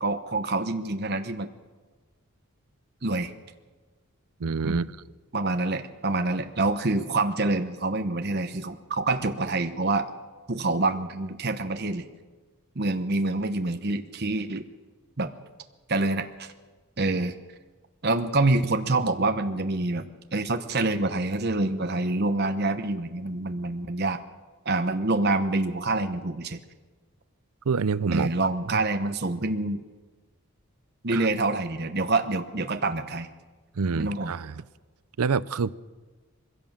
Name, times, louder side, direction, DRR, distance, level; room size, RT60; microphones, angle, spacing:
voice 1, 0.0-1.5 3.0-3.3 4.6-4.9 5.3-10.1 10.5-12.1 12.8-14.6 15.2-15.3 15.9-16.5 17.0-17.3 18.0-24.2 24.6-26.6 28.1-29.8 31.0-33.3 34.0-34.3, right 2 dB, 45° right, 1.0 m, -26 dB
voice 2, 4.4-4.9 27.7-28.3 31.1-31.3 33.8-34.6 35.2-35.7, right 5 dB, 90° right, 0.6 m, -26 dB
22.5 x 16.0 x 7.3 m
head